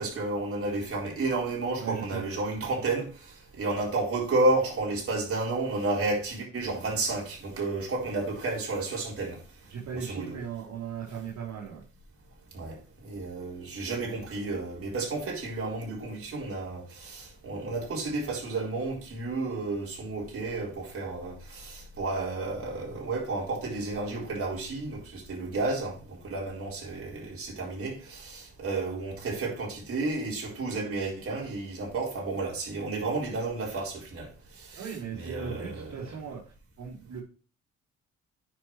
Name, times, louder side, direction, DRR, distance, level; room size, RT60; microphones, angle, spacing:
voice 1, 0.0-9.4 9.9-10.4 12.5-34.9 35.2-36.2, right 2 dB, 45° right, 4.2 m, -32 dB
voice 2, 1.8-2.2 9.7-11.8 34.8-36.4 36.8-37.2, right 7 dB, 65° right, 3.4 m, -37 dB
9.4 x 6.1 x 3.2 m
cardioid pair, 90°, 30 cm